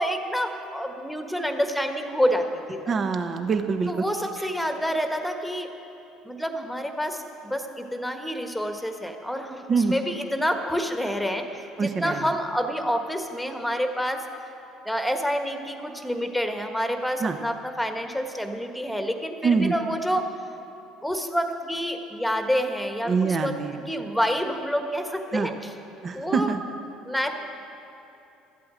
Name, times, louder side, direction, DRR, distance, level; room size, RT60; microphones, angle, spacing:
voice 1, 0.0-2.9 3.9-5.7 6.2-14.2 14.8-20.3 21.0-23.5 23.9-25.7 26.1-26.5 27.1-27.4, equal, 5° left, 6 dB, 1.4 m, -28 dB
voice 2, 2.9-3.9 9.7-9.9 11.8-12.2 17.2-17.4 19.4-19.7 23.1-23.8 25.3-25.5 26.0-26.6, right 5 dB, 40° right, 8 dB, 0.9 m, -24 dB
13.5 x 8.5 x 7.6 m, 2.9 s
hypercardioid pair, 60°, 0 cm